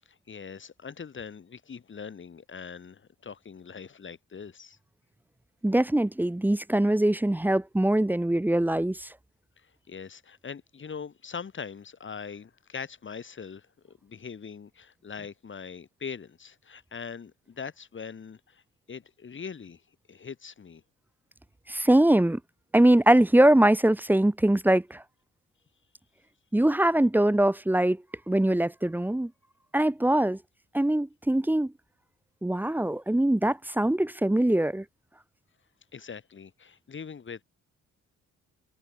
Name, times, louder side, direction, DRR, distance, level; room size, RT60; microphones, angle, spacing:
voice 1, 0.1-4.8 9.6-18.6 18.9-19.8 20.1-20.8 35.9-37.4, left 6 dB, 40° left, 3.9 m, -42 dB
voice 2, 5.6-9.1 21.7-22.4 22.7-25.0 26.5-28.0 28.3-29.3 29.7-30.4 30.7-31.7 32.4-34.8, right 1 dB, 5° right, 0.7 m, -22 dB
cardioid pair, 90°, 30 cm